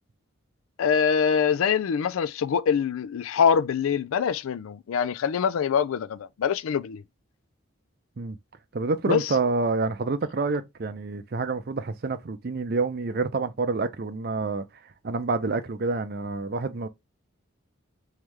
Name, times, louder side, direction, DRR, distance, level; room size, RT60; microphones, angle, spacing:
voice 1, 0.8-7.0 9.1-9.3, left 7 dB, 85° left, 0.4 m, -24 dB
voice 2, 8.7-14.6 15.0-16.9, right 3 dB, 45° right, 0.5 m, -28 dB
3.2 x 3.1 x 3.5 m
head